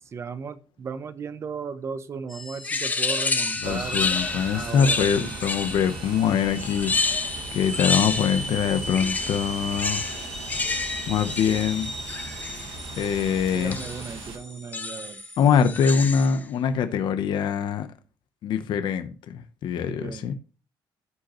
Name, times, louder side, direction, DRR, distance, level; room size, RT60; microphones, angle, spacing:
voice 1, 0.1-4.1 4.5-5.4 13.5-15.2 19.9-20.3, right 5 dB, 35° right, 0.7 m, -36 dB
sound 1, 2.3-16.3, left 1 dB, 5° left, 1.4 m, -38 dB
sound 2, 2.6-6.0 6.6-8.6 8.8-12.7 13.7-14.1 14.7-15.2 15.6-16.4, left 4 dB, 20° left, 0.7 m, -29 dB
voice 2, 3.6-10.1 10.7-10.8 11.1-11.9 13.0-13.8 15.4-17.9 18.4-20.3, left 7 dB, 65° left, 0.8 m, -24 dB
sound 3, 3.6-14.4, right 3 dB, 90° right, 1.5 m, -39 dB
14.5 x 5.1 x 3.0 m
cardioid pair, 160°, 8 cm